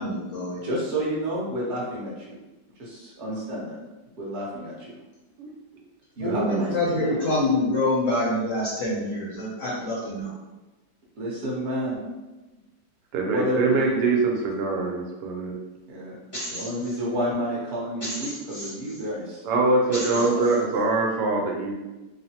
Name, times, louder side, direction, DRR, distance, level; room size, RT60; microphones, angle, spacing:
voice 1, 0.0-0.7 6.2-10.3, left 1 dB, 65° left, -6 dB, 0.8 m, -26 dB
voice 2, 0.6-2.3 2.8-3.8 4.2-4.9 6.2-7.1 11.2-12.0 13.2-14.0 15.9-16.2 16.5-19.4 20.1-20.2 20.5-20.7, equal, 50° right, -5 dB, 0.9 m, -30 dB
voice 3, 13.1-15.6 19.4-21.7, right 3 dB, 75° right, 0 dB, 1.2 m, -23 dB
sound 1, 16.3-17.0 18.0-19.0 19.9-20.6, equal, 25° left, 0.6 m, -35 dB
3.0 x 2.0 x 2.7 m, 1.1 s
omnidirectional pair, 1.9 m